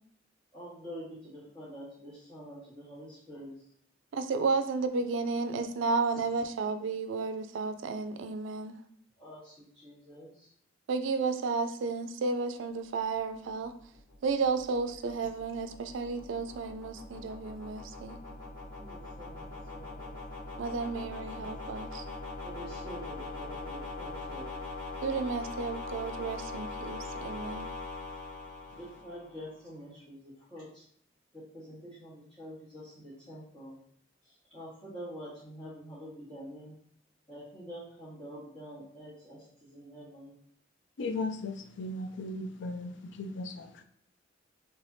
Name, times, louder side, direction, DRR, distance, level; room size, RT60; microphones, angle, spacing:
voice 1, 0.5-3.6 6.1-6.2 9.2-10.5 18.7-20.2 22.4-24.5 28.7-30.8 31.3-33.8 34.2-36.7 37.3-40.3, equal, 25° left, 1.3 m, -46 dB
voice 2, 4.1-8.8 10.9-13.7 14.2-18.2 20.6-22.0 25.0-27.7, right 4 dB, 75° right, 0.4 m, -32 dB
sound 1, 13.3-29.5, left 2 dB, 45° left, 1.4 m, -42 dB
voice 3, 41.0-43.8, left 2 dB, 65° left, 0.4 m, -37 dB
3.4 x 3.3 x 2.6 m
head